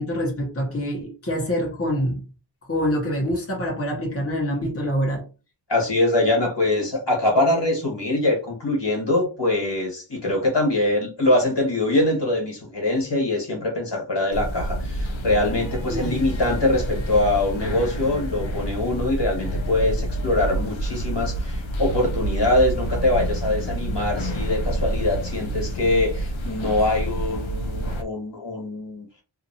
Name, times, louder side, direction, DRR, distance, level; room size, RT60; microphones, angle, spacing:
voice 1, 0.0-2.2 2.7-5.2 15.9-16.3, equal, 30° left, 0.9 m, -25 dB
voice 2, 5.7-29.0, left 2 dB, 65° left, 1.4 m, -23 dB
sound 1, 14.3-28.0, right 1 dB, 85° left, 0.6 m, -28 dB
2.8 x 2.4 x 2.7 m
wide cardioid pair, 45°, 46 cm